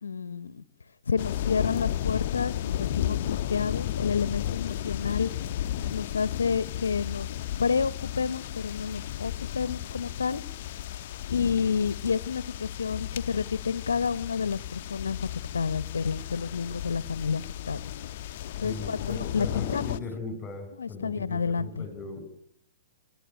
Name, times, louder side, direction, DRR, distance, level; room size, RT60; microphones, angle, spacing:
voice 1, 0.0-0.6 1.1-5.3 5.9-7.3 7.6-10.4 11.3-17.9 18.6-20.0 20.8-21.9, left 6 dB, 85° left, 19 dB, 0.9 m, -30 dB
sound 1, 1.2-20.0, left 12 dB, 50° left, 0.8 m, -34 dB
voice 2, 18.6-22.3, left 4 dB, 20° left, 9 dB, 7.4 m, -38 dB
27.0 x 11.0 x 9.1 m, 0.73 s
hypercardioid pair, 125°, 0 cm